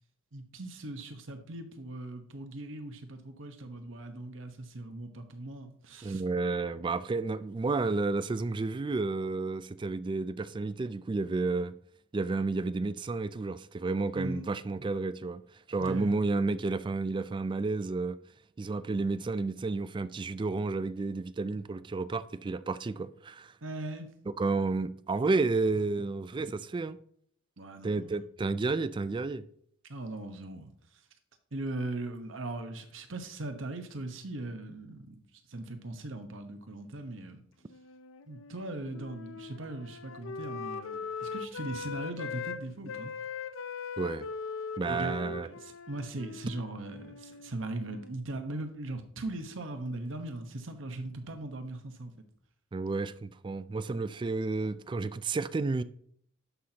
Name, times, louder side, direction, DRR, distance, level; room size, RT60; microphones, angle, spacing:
voice 1, 0.3-6.2 14.1-14.5 15.8-16.1 23.6-24.1 27.6-28.3 29.8-31.0 31.5-35.2 35.5-37.4 38.3-43.1 44.9-52.2, right 2 dB, 75° right, 1.1 m, -39 dB
voice 2, 6.0-11.7 12.1-15.4 15.7-18.2 18.6-23.5 24.3-27.0 27.8-29.4 44.0-44.3 44.8-45.5 52.7-55.8, right 3 dB, 25° right, 0.3 m, -31 dB
Wind instrument woodwind instrument, 37.7-42.6 42.9-48.2, left 5 dB, 85° left, 0.5 m, -40 dB
11.0 x 5.9 x 2.9 m
head